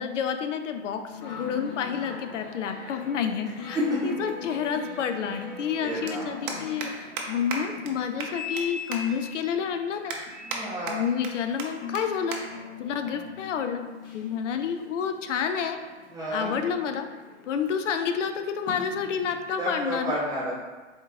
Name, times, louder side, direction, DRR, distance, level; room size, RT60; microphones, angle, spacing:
voice 1, 0.0-3.8 4.0-10.2 10.9-12.4 12.8-13.8 14.1-15.8 16.3-17.1 17.5-20.2, left 7 dB, 85° left, 7 dB, 0.5 m, -29 dB
sound 1, 1.1-20.0, left 5 dB, 35° left, 0.7 m, -42 dB
voice 2, 5.8-6.6 10.4-11.0 16.1-16.5 19.6-20.5, equal, 10° right, -8 dB, 1.0 m, -30 dB
sound 2, 6.1-6.2 6.5-6.9 7.2-7.3 7.5-7.6 7.9-8.0 8.2-8.6 8.9-9.0 9.5-9.6 10.1-10.6 10.9-11.3 11.6-11.7 11.9-12.0 12.3-12.4 12.7-13.0 13.7-14.0, right 5 dB, 45° right, 0.6 m, -34 dB
4.2 x 3.9 x 2.2 m, 1.3 s
hypercardioid pair, 140°, 36 cm